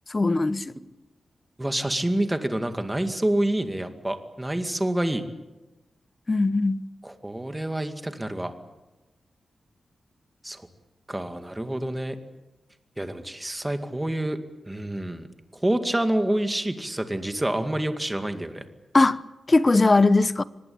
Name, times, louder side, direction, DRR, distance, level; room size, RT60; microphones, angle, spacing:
voice 1, 0.1-0.7 6.3-6.8 18.9-19.2 19.5-20.4, left 3 dB, 25° left, 0.9 m, -20 dB
voice 2, 1.6-5.2 7.0-8.5 10.4-10.6 11.1-12.2 13.0-14.4 14.7-15.3 15.6-18.6, right 1 dB, 10° right, 2.3 m, -27 dB
25.5 x 20.0 x 8.8 m
wide cardioid pair, 105°, 0 cm